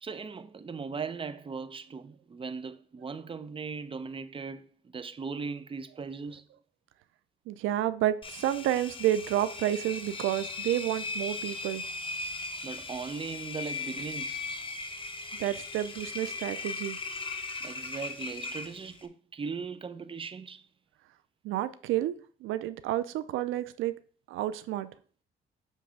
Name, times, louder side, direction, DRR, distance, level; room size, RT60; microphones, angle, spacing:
voice 1, 0.0-4.7 4.9-6.4 12.6-14.4 17.6-20.6, right 5 dB, 25° right, 0.7 m, -38 dB
voice 2, 7.5-11.8 15.4-17.0 21.4-24.0 24.3-24.9, right 13 dB, 90° right, 0.5 m, -30 dB
Engine, 8.2-19.1, left 3 dB, 25° left, 1.1 m, -38 dB
7.4 x 3.3 x 6.3 m
cardioid pair, 90°, 20 cm